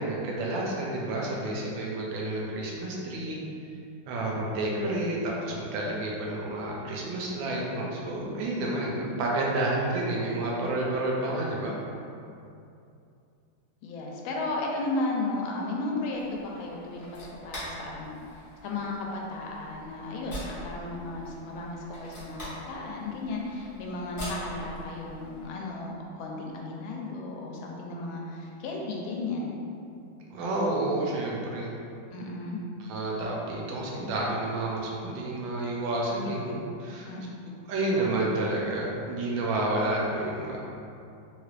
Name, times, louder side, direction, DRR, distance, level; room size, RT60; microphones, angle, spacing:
voice 1, 0.0-3.4 4.1-11.7 30.3-31.7 32.8-37.1 37.7-40.6, right 2 dB, 80° right, -3 dB, 1.3 m, -30 dB
voice 2, 13.8-29.5 32.1-32.6 37.1-37.4, left 2 dB, 85° left, -1 dB, 1.3 m, -34 dB
sound 1, 16.1-25.5, equal, 35° left, 0.8 m, -43 dB
3.2 x 3.2 x 2.4 m, 2.6 s
omnidirectional pair, 2.1 m